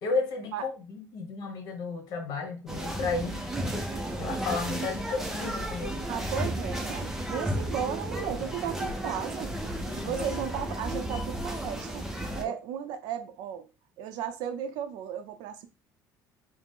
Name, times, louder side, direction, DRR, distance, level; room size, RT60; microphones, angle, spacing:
voice 1, 0.0-3.4 4.2-6.0 9.9-10.1 12.4-12.6, left 4 dB, 65° left, 1.2 m, -33 dB
sound 1, 2.7-12.4, right 1 dB, 5° right, 0.6 m, -33 dB
voice 2, 6.1-9.6 10.0-12.1 12.4-13.7 14.0-15.7, right 9 dB, 85° right, 0.6 m, -35 dB
4.9 x 2.1 x 3.7 m
cardioid pair, 150°, 7 cm